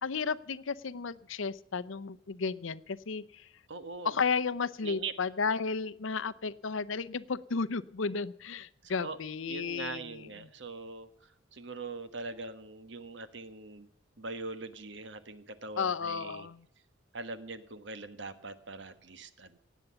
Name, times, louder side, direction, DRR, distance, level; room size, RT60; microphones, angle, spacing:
voice 1, 0.0-3.5 4.0-10.2 15.8-16.6, left 5 dB, 75° left, 13 dB, 0.7 m, -33 dB
voice 2, 3.7-4.2 4.8-5.1 8.8-9.2 9.5-13.9 14.2-16.5 17.1-19.6, right 3 dB, 60° right, 11 dB, 1.3 m, -42 dB
18.5 x 8.3 x 6.9 m, 0.73 s
head